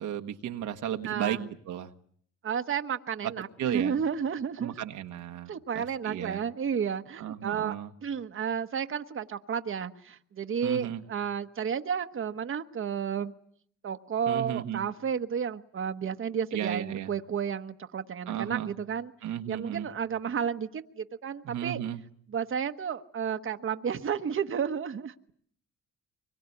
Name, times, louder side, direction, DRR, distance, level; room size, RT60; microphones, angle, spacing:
voice 1, 0.0-1.4 1.7-1.9 3.6-4.0 4.6-6.4 7.2-7.9 10.6-11.0 14.3-14.9 16.5-17.1 18.3-18.7 19.2-19.9 21.4-22.0, right 10 dB, 80° right, 5 dB, 1.4 m, -34 dB
voice 2, 1.0-1.5 2.4-4.7 5.5-7.7 8.0-13.3 13.8-19.1 19.5-21.8 22.3-25.1, right 7 dB, 45° right, 7 dB, 1.2 m, -32 dB
24.0 x 22.5 x 9.8 m, 0.65 s
cardioid pair, 90°, 30 cm